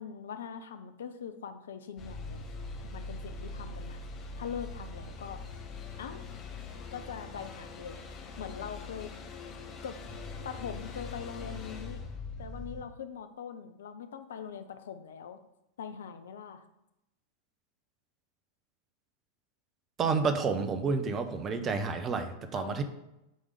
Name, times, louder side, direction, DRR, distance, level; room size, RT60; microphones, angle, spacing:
voice 1, 0.0-2.5 2.9-4.0 4.4-5.4 6.0-6.3 6.9-8.0 8.4-9.1 9.8-10.0 10.4-12.0 12.4-15.4 15.8-16.6 22.5-22.8, left 7 dB, 65° left, 9 dB, 0.6 m, -42 dB
sound 1, 2.0-12.8, left 3 dB, 35° left, 1.0 m, -42 dB
voice 2, 20.0-22.8, right 4 dB, 25° right, 8 dB, 0.8 m, -30 dB
7.7 x 3.6 x 5.1 m, 0.89 s
figure-of-eight pair, 90°, 0 cm